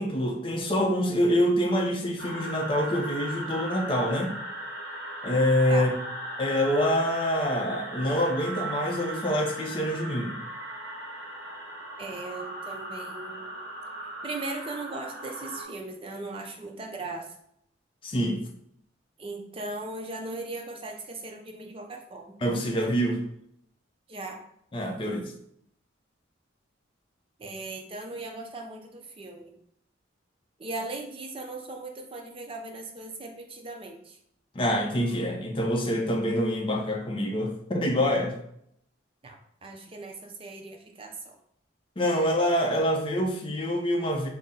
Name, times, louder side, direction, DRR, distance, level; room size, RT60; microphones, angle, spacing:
voice 1, 0.0-4.3 5.2-5.9 6.4-10.4 18.0-18.4 22.4-23.2 24.7-25.3 34.5-38.3 42.0-44.3, equal, 30° left, 1 dB, 0.5 m, -26 dB
sound 1, 2.2-15.6, right 1 dB, 60° right, 0.9 m, -38 dB
voice 2, 12.0-13.6 14.2-17.3 19.2-22.3 24.1-24.4 27.4-29.5 30.6-34.2 39.2-41.3, right 2 dB, 30° right, 2 dB, 0.5 m, -38 dB
4.0 x 2.0 x 3.7 m, 0.72 s
head